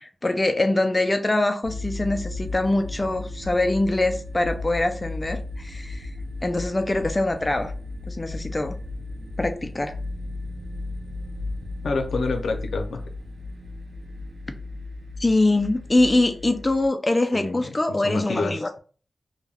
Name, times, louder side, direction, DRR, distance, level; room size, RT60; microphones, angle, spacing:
voice 1, 0.0-6.1 6.4-7.7 8.1-8.8 9.4-10.0 15.2-18.7, left 2 dB, 25° left, 0.4 m, -23 dB
sound 1, 1.6-16.9, left 2 dB, 80° right, 0.6 m, -35 dB
voice 2, 11.8-13.0 17.3-18.8, left 3 dB, 90° left, 0.5 m, -28 dB
2.3 x 2.2 x 3.3 m
wide cardioid pair, 90°, 0 cm